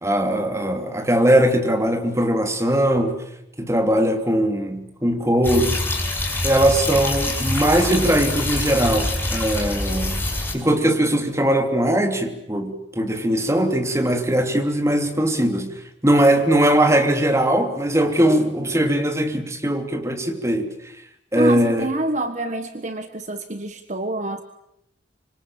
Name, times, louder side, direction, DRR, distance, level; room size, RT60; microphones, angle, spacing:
voice 1, 0.0-3.2 3.6-5.7 6.4-10.2 10.5-20.7 21.3-21.9, right 1 dB, 15° right, 5 dB, 3.1 m, -20 dB
sound 1, 5.4-10.5, left 1 dB, 10° left, 6.1 m, -25 dB
voice 2, 21.3-24.4, right 2 dB, 40° right, 8 dB, 1.5 m, -27 dB
26.0 x 25.0 x 8.9 m, 0.78 s
head